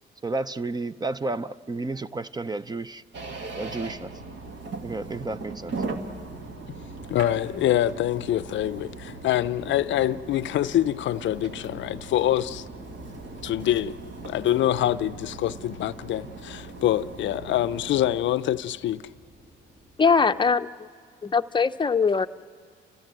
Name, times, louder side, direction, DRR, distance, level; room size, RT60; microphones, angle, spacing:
voice 1, 0.2-3.0 3.6-4.1 4.8-5.8, right 3 dB, 20° right, 0.5 m, -31 dB
sound 1, 3.1-18.2, right 3 dB, 70° right, 2.0 m, -39 dB
sound 2, 4.3-20.4, right 1 dB, 50° right, 3.2 m, -49 dB
voice 2, 7.1-12.7 13.4-14.0 14.2-19.1, left 12 dB, 70° left, 0.5 m, -25 dB
voice 3, 20.0-20.9 21.2-22.3, left 5 dB, 25° left, 0.6 m, -21 dB
30.0 x 15.5 x 7.6 m
cardioid pair, 90°, 20 cm